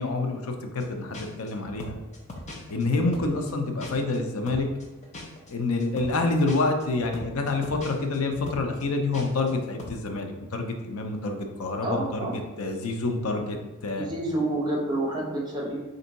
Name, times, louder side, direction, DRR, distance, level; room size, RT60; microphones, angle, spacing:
voice 1, 0.0-2.0 2.7-4.7 5.5-13.6 13.8-14.1, left 3 dB, 75° left, 4 dB, 0.5 m, -27 dB
sound 1, 0.8-0.9 1.1-4.2 4.5-9.5 9.8-10.0, left 2 dB, 30° left, 0.7 m, -41 dB
voice 2, 11.8-12.4 14.0-15.9, right 1 dB, 20° right, -2 dB, 0.8 m, -29 dB
4.4 x 2.7 x 3.9 m, 1.1 s
head